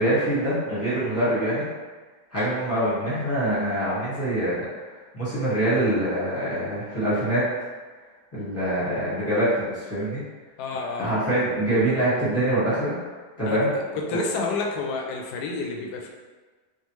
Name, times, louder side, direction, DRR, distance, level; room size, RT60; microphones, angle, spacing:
voice 1, 0.0-1.6 2.3-4.7 5.1-7.5 8.3-10.2 11.0-12.9 13.4-13.8 14.1-14.2, right 1 dB, 10° left, -12 dB, 1.1 m, -24 dB
voice 2, 10.6-11.1 13.4-13.6 13.9-16.1, left 4 dB, 80° left, 1 dB, 1.1 m, -29 dB
3.4 x 2.4 x 3.0 m, 1.4 s
omnidirectional pair, 1.8 m